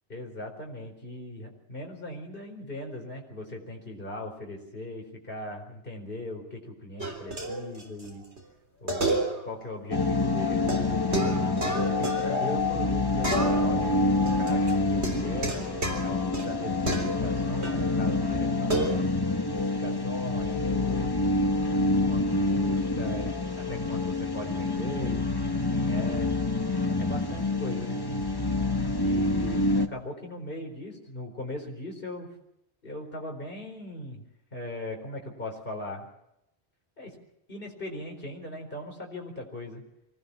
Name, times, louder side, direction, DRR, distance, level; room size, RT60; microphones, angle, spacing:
voice 1, 0.1-8.2 8.8-11.1 11.7-15.6 16.0-19.0 19.5-21.1 22.1-25.2 25.5-26.3 27.0-28.0 29.0-32.3 32.8-34.3 34.5-36.1 37.0-37.2 37.5-39.8, left 1 dB, 50° left, 0 dB, 4.7 m, -39 dB
sound 1, 7.0-8.1 8.4-8.5 8.9-9.7 9.9-10.0 10.7-12.9 13.2-13.9 14.2-17.9 18.7-19.0, right 2 dB, 75° right, 3.8 m, -31 dB
sound 2, 9.9-29.9, left 2 dB, 20° left, 1.2 m, -27 dB
24.5 x 18.0 x 7.1 m, 0.80 s
omnidirectional pair, 1.1 m